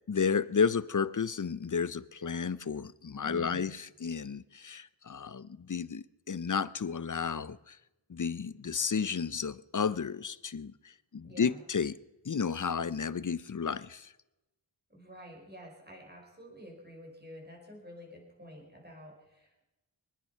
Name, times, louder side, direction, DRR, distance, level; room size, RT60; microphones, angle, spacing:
voice 1, 0.1-7.8 8.1-11.9 12.2-14.1, left 6 dB, 45° left, 0.6 m, -32 dB
voice 2, 3.2-3.7 11.2-11.6 14.9-19.6, equal, 20° right, 4.9 m, -49 dB
24.0 x 9.8 x 5.7 m
wide cardioid pair, 40°, 46 cm